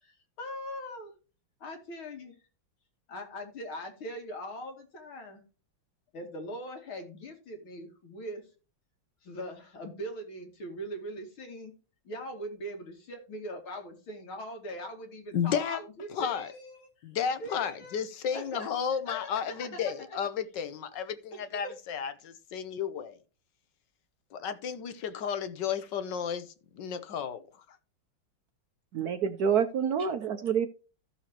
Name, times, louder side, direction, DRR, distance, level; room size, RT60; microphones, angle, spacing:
voice 1, 0.0-1.1 1.6-2.4 3.1-5.4 6.1-8.4 9.2-11.7 12.0-16.9 17.4-18.0 18.3-18.7 19.1-20.2 21.3-21.7, equal, 85° left, 3.2 m, -41 dB
voice 2, 15.3-15.8 16.1-16.5 17.0-23.2 24.3-27.8, left 7 dB, 65° left, 1.5 m, -33 dB
voice 3, 28.9-30.7, right 7 dB, 60° right, 1.1 m, -27 dB
14.5 x 6.8 x 2.9 m
omnidirectional pair, 2.2 m